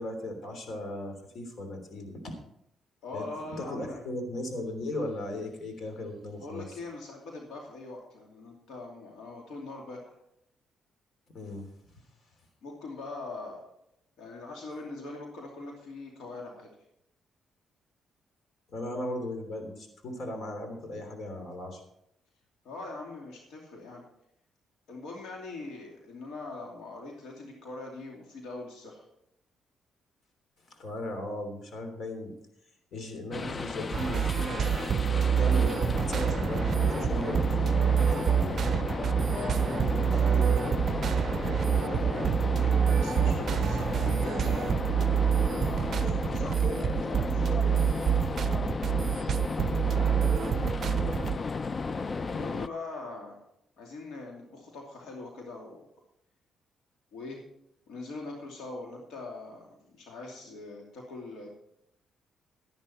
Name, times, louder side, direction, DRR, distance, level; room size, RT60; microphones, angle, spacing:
voice 1, 0.0-2.3 3.1-3.2 3.6-6.7 11.3-11.7 18.7-21.8 30.8-32.3 32.9-34.8 35.4-38.6, left 1 dB, 60° left, 5 dB, 3.2 m, -37 dB
voice 2, 3.0-4.0 6.4-10.1 12.6-13.6 14.2-16.7 22.6-24.0 24.9-29.0 39.3-39.6 40.1-40.8 41.6-42.4 43.0-47.9 52.2-53.3 53.8-55.8 57.1-57.4 57.9-61.5, left 3 dB, 80° left, 0 dB, 2.6 m, -42 dB
sound 1, 33.3-52.7, left 4 dB, 35° left, 0.4 m, -33 dB
sound 2, 33.9-51.4, right 8 dB, 55° right, 0.5 m, -27 dB
12.5 x 11.5 x 4.4 m, 0.77 s
cardioid pair, 90°, 0 cm